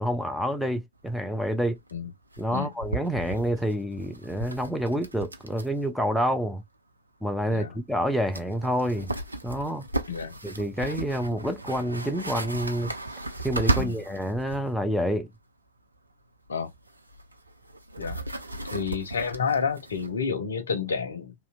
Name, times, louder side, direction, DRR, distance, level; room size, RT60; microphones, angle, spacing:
voice 1, 0.0-1.8 2.4-6.6 7.2-9.1 9.4-9.9 10.4-12.9 13.4-15.3, equal, ahead, 0.4 m, -28 dB
sound 1, 1.0-1.1 1.3-1.4 1.7-1.9 2.3-5.9 6.1-6.2 7.9-8.0 8.3-14.7 16.5-20.2, right 2 dB, 80° right, 0.4 m, -35 dB
voice 2, 10.1-10.4 13.8-14.0 16.5-16.7 18.0-18.2 18.7-21.3, left 6 dB, 70° left, 0.5 m, -29 dB
2.7 x 2.0 x 2.4 m
figure-of-eight pair, 90°, 0 cm